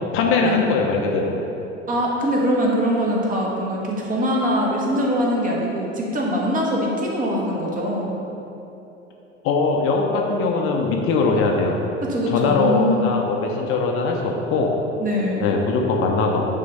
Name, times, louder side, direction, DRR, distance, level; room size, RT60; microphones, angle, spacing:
voice 1, 0.1-1.4 9.4-11.8 12.3-14.7 15.4-16.5, left 4 dB, 35° left, 1 dB, 0.8 m, -21 dB
voice 2, 1.9-8.2 12.1-13.1 15.0-15.5, equal, 20° right, -2 dB, 1.5 m, -22 dB
9.2 x 3.8 x 5.3 m, 3.0 s
figure-of-eight pair, 80°, 38 cm